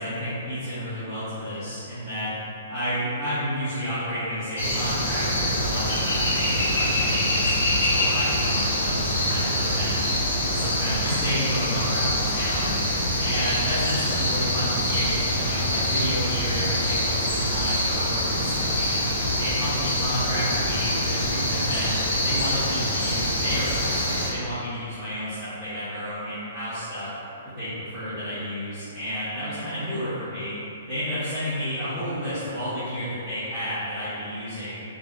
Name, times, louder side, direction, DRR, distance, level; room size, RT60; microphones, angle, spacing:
voice 1, 0.0-2.3 2.7-10.0 10.4-12.7 13.2-19.0 19.4-27.1 27.4-30.5 30.9-34.8, equal, ahead, -17 dB, 0.5 m, -31 dB
sound 1, 4.6-24.3, left 1 dB, 65° left, 0.9 m, -25 dB
2.3 x 2.1 x 3.5 m, 2.8 s
hypercardioid pair, 180°, 0 cm